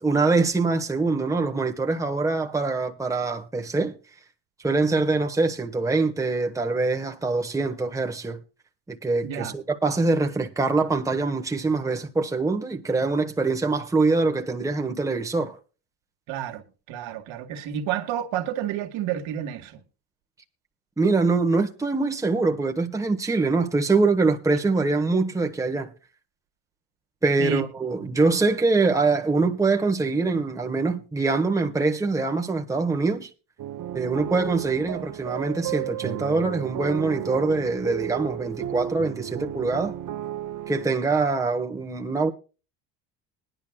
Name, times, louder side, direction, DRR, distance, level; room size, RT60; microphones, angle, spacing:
voice 1, 0.0-3.9 4.6-8.4 8.9-15.6 21.0-25.9 27.2-33.3 33.9-39.9 40.7-42.3, right 3 dB, 5° right, 1.2 m, -24 dB
voice 2, 9.2-9.5 16.3-19.8 27.4-27.7 28.0-28.1, right 10 dB, 65° right, 1.9 m, -30 dB
sound 1, 33.6-40.9, right 12 dB, 40° right, 0.9 m, -33 dB
20.5 x 10.5 x 2.3 m
supercardioid pair, 85°, 49 cm